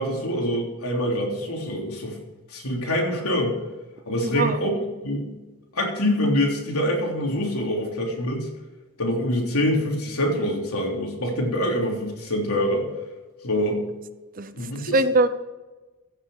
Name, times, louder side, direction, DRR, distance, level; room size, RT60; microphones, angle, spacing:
voice 1, 0.0-2.2 2.5-3.6 4.0-4.7 5.0-5.3 5.7-8.5 9.0-12.8 13.4-13.8 14.6-14.9, left 1 dB, 90° left, 0 dB, 3.4 m, -25 dB
voice 2, 4.2-4.6 14.3-15.3, right 2 dB, 40° right, 12 dB, 0.7 m, -22 dB
15.5 x 6.9 x 6.5 m, 1.2 s
head